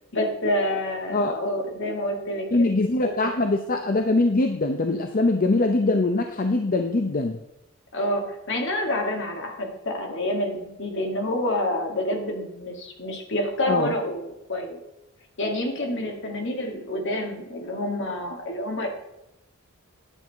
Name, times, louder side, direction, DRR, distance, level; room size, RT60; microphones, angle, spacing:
voice 1, 0.1-2.7 3.0-3.1 7.9-14.8 15.4-18.9, left 1 dB, 55° left, 3 dB, 1.8 m, -28 dB
voice 2, 2.5-7.4 13.7-13.9, left 2 dB, 40° left, 6 dB, 0.6 m, -22 dB
10.0 x 7.6 x 4.5 m, 0.88 s
head